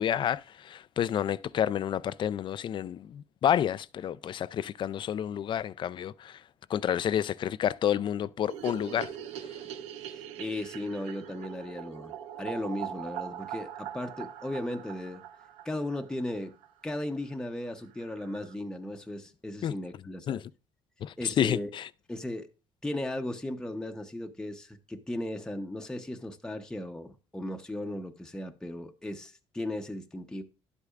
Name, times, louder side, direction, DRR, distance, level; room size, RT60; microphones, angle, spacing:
voice 1, 0.0-6.4 6.7-9.1 19.6-19.7 20.3-20.4 21.0-21.9, left 10 dB, 50° left, 0.4 m, -29 dB
sound 1, 8.5-16.7 17.0-17.1 17.3-17.4 17.7-17.8 18.0-18.5, right 10 dB, 90° right, 0.7 m, -42 dB
voice 2, 10.1-15.2 15.6-16.5 16.8-20.4 21.2-21.7 22.1-22.5 22.8-30.4, left 1 dB, 5° left, 0.8 m, -36 dB
10.5 x 8.2 x 2.4 m
cardioid pair, 100°, 11 cm